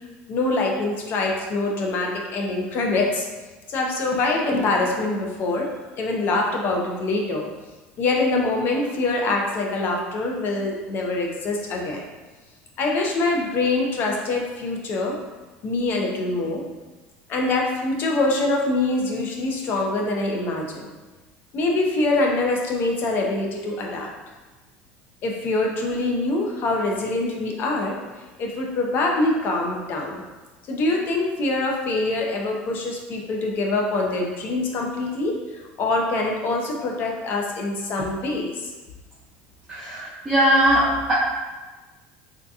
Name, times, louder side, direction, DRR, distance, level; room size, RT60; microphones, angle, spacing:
voice 1, 0.3-3.3 3.7-5.7 6.0-7.4 8.0-12.0 12.8-15.2 15.6-16.6 17.3-20.8 21.5-24.1 25.2-28.0 28.4-30.2 30.7-35.3 35.8-38.7, left 2 dB, 45° left, 0 dB, 0.6 m, -24 dB
voice 2, 39.7-41.1, equal, 10° right, -13 dB, 0.9 m, -20 dB
3.6 x 2.8 x 2.3 m, 1.2 s
supercardioid pair, 125°, 5 cm